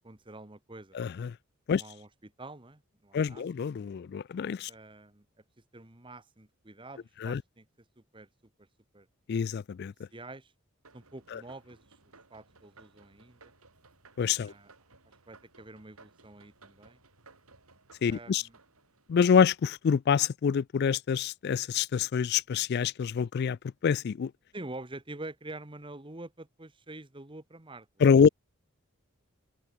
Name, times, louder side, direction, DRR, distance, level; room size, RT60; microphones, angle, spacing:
voice 1, 0.0-1.0 1.7-3.5 4.7-5.2 5.7-7.7 8.0-8.3 8.9-9.1 10.1-10.5 10.9-11.9 12.3-13.4 14.4-14.7 15.3-17.0 18.1-18.6 24.5-28.1, right 2 dB, 20° right, 1.3 m, -46 dB
voice 2, 0.9-1.3 1.7-1.8 3.1-4.7 7.2-7.4 9.3-9.9 11.3-11.4 14.2-14.5 18.0-18.4 19.1-23.6 23.8-24.3 28.0-28.3, left 6 dB, 50° left, 0.3 m, -26 dB
sound 1, 10.8-19.9, right 3 dB, 85° right, 7.8 m, -59 dB
open air
head